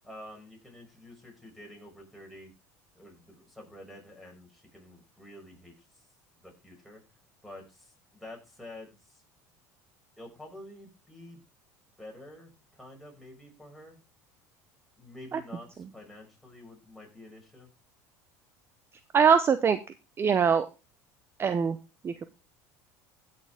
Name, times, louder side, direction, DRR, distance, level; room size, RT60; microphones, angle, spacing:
voice 1, 0.0-2.5 2.9-6.0 6.4-7.0 7.4-9.2 10.2-11.4 12.0-14.0 15.0-17.7, left 1 dB, ahead, -1 dB, 6.2 m, -48 dB
voice 2, 19.1-19.8 20.2-20.7 21.4-21.8 22.0-22.2, right 6 dB, 30° right, 12 dB, 0.7 m, -22 dB
16.5 x 6.7 x 3.6 m, 0.29 s
supercardioid pair, 100°, 8 cm